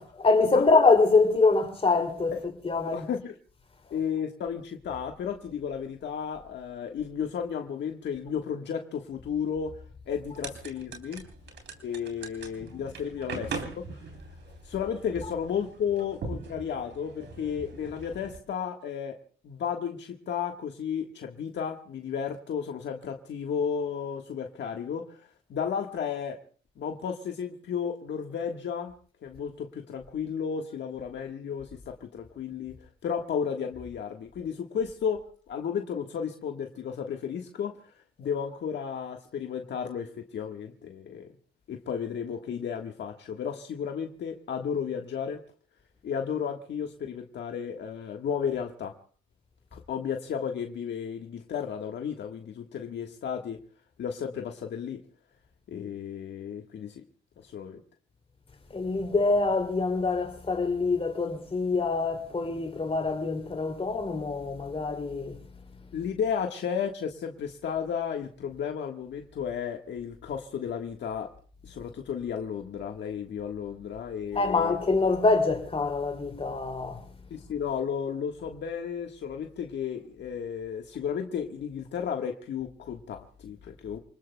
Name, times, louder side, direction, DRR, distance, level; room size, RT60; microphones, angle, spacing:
voice 1, 0.0-2.3 2.6-3.1 58.7-65.4 74.3-77.0, left 3 dB, 30° left, 2.8 m, -25 dB
voice 2, 2.9-3.3 3.9-9.8 10.1-11.3 11.8-14.0 14.6-19.2 19.4-26.4 26.8-28.9 29.2-32.8 33.0-37.9 38.2-41.3 41.7-45.4 46.0-48.9 49.7-53.6 54.0-55.0 55.7-57.0 57.4-57.8 65.9-71.3 71.6-74.8 77.3-84.0, left 7 dB, 65° left, 1.5 m, -33 dB
sound 1, 10.2-18.4, right 4 dB, 65° right, 3.6 m, -41 dB
28.5 x 20.0 x 2.3 m
cardioid pair, 90°, 20 cm